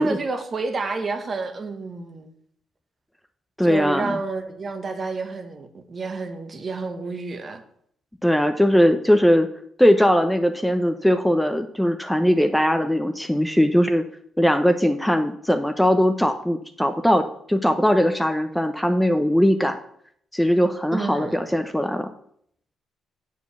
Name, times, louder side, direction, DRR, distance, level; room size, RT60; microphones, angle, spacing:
voice 1, 0.0-2.3 3.6-7.6 20.9-21.4, right 3 dB, 40° right, 1.1 m, -29 dB
voice 2, 3.6-4.2 8.2-9.5 9.8-14.0 14.4-19.8 20.3-22.1, equal, 5° left, 0.6 m, -20 dB
7.1 x 4.7 x 7.0 m
cardioid pair, 90°, 0 cm